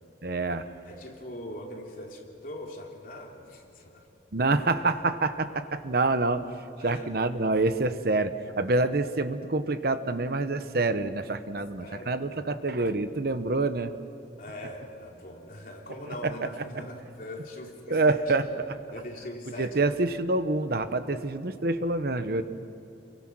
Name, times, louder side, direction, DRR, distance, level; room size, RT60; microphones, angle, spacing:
voice 1, 0.2-0.7 4.3-6.4 6.8-13.9 16.2-16.3 17.9-18.8 19.6-22.4, right 2 dB, 60° right, 11 dB, 1.0 m, -27 dB
voice 2, 0.8-4.1 6.8-7.1 11.8-12.2 14.4-18.2 18.9-20.0, left 1 dB, 50° left, -1 dB, 3.4 m, -41 dB
29.0 x 23.0 x 6.2 m, 2.6 s
head